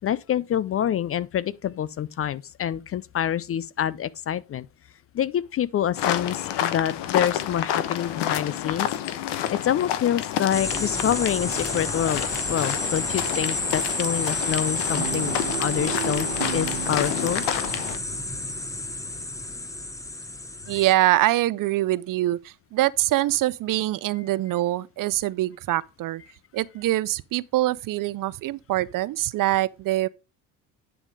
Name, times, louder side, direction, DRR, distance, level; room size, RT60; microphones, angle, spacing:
voice 1, 0.0-4.7 5.1-8.9 9.5-12.2 12.5-15.3 15.6-17.4, left 10 dB, 35° left, 0.4 m, -26 dB
sound 1, 6.0-18.0, left 11 dB, 70° left, 1.0 m, -29 dB
sound 2, 10.5-20.9, left 2 dB, 10° left, 0.8 m, -30 dB
Guitar, 14.9-19.3, right 18 dB, 80° right, 0.9 m, -35 dB
voice 2, 20.7-26.2 26.5-30.1, right 16 dB, 50° right, 0.5 m, -24 dB
9.9 x 3.7 x 4.8 m
supercardioid pair, 80°, 43 cm